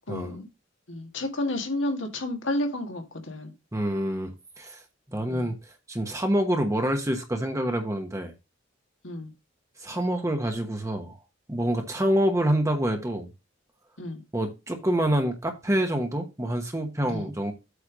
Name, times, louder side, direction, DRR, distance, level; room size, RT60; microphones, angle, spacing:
voice 1, 0.1-0.5 0.9-3.5 5.3-5.5 9.0-9.3 14.0-14.2 17.1-17.3, left 1 dB, 70° left, 2.0 m, -31 dB
voice 2, 3.7-4.3 4.6-4.8 5.1-5.5 5.9-8.3 9.8-11.1 11.5-13.3 14.3-17.5, right 1 dB, 15° right, 1.2 m, -26 dB
8.3 x 3.5 x 6.1 m
head